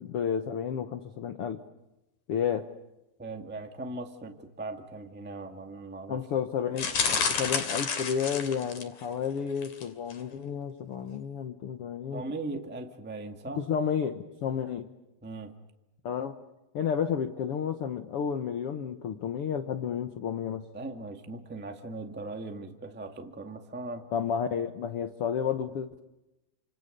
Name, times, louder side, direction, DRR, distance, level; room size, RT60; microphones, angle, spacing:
voice 1, 0.0-1.6 2.3-2.7 6.1-12.2 13.6-14.9 16.0-16.4 16.7-20.6 24.1-26.0, left 7 dB, 85° left, 8 dB, 1.2 m, -31 dB
voice 2, 3.2-6.3 12.1-13.6 15.2-15.5 20.7-24.1, right 2 dB, 5° right, 4 dB, 0.9 m, -39 dB
sound 1, 6.8-9.0 9.6-9.8 10.1-10.2, left 5 dB, 55° left, 4.0 m, -30 dB
29.5 x 27.0 x 6.8 m, 0.98 s
omnidirectional pair, 4.3 m